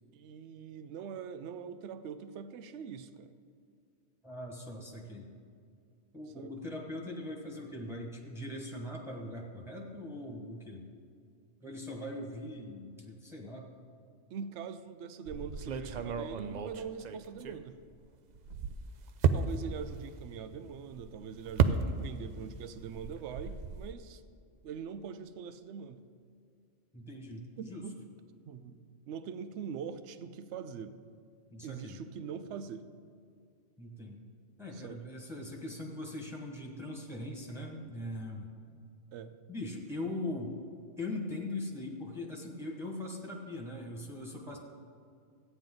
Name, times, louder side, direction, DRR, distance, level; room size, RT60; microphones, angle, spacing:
voice 1, 0.1-3.3 6.4-6.5 14.3-17.8 19.3-24.2 24.6-26.0 27.6-28.0 28.5-28.8 29.1-31.0 31.6-32.9 34.7-35.0 39.1-39.4, right 7 dB, 75° right, 11 dB, 0.9 m, -43 dB
voice 2, 4.2-5.3 6.1-10.8 11.6-13.7 19.6-19.8 26.9-27.8 31.5-32.0 33.8-34.2 34.6-38.5 39.5-40.6 41.0-44.6, left 1 dB, ahead, 0 dB, 1.4 m, -41 dB
sound 1, 15.3-18.0 18.3-22.4 22.6-23.9, right 6 dB, 60° right, 0.4 m, -33 dB
14.0 x 9.0 x 3.9 m, 2.3 s
omnidirectional pair, 1.2 m